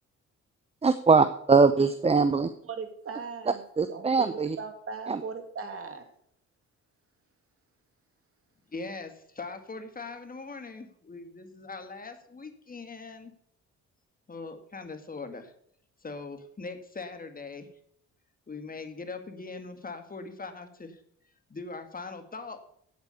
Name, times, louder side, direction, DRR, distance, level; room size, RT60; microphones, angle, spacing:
voice 1, 0.8-2.5 3.8-4.6 5.1-5.2, right 4 dB, 20° right, 12 dB, 0.7 m, -22 dB
voice 2, 2.6-3.6 3.9-6.0, right 5 dB, 50° right, 7 dB, 2.4 m, -39 dB
voice 3, 8.7-13.3 14.3-15.5 16.0-17.7 18.5-21.0 21.5-22.6, left 3 dB, 30° left, 7 dB, 1.9 m, -41 dB
9.1 x 8.3 x 6.6 m, 0.69 s
cardioid pair, 90°, 30 cm